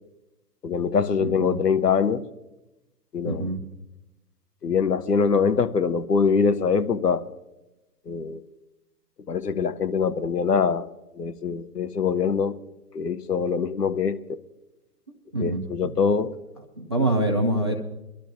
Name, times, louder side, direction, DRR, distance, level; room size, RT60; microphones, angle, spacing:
voice 1, 0.6-2.3 3.1-3.5 4.6-7.3 8.1-8.4 9.3-10.9 11.2-12.6 12.9-14.4 15.4-16.3, left 6 dB, 80° left, 0.9 m, -23 dB
voice 2, 1.2-1.6 3.2-3.6 15.3-15.6 16.8-17.8, right 1 dB, 20° right, 0.4 m, -25 dB
23.5 x 12.0 x 2.6 m
figure-of-eight pair, 120°, 47 cm